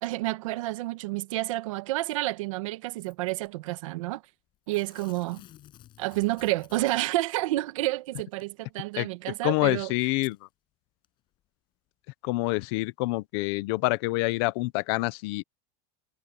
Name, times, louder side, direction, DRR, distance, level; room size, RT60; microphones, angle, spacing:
voice 1, 0.0-4.2 4.7-5.4 6.0-9.9, right 18 dB, 75° right, 1.8 m, -30 dB
Packing tape duct tape / Tearing, 3.0-3.5 4.7-7.2 8.4-8.5 9.4-9.5 10.1-10.4 11.0-11.1, left 13 dB, 30° left, 7.5 m, -54 dB
voice 2, 9.4-10.4 12.2-15.4, left 22 dB, 50° left, 0.8 m, -27 dB
supercardioid pair, 180°, 17 cm